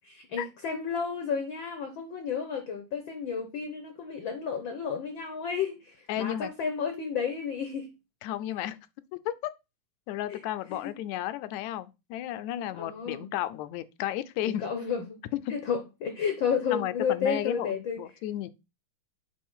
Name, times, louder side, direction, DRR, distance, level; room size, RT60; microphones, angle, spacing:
voice 1, 0.3-7.9 10.3-10.4 10.7-10.9 12.7-13.3 14.4-15.2 15.5-18.0, left 6 dB, 65° left, 1.2 m, -32 dB
voice 2, 6.1-6.5 8.2-8.8 9.1-9.3 10.1-14.6 16.7-18.5, left 13 dB, 80° left, 1.9 m, -33 dB
8.6 x 3.4 x 5.5 m
omnidirectional pair, 3.4 m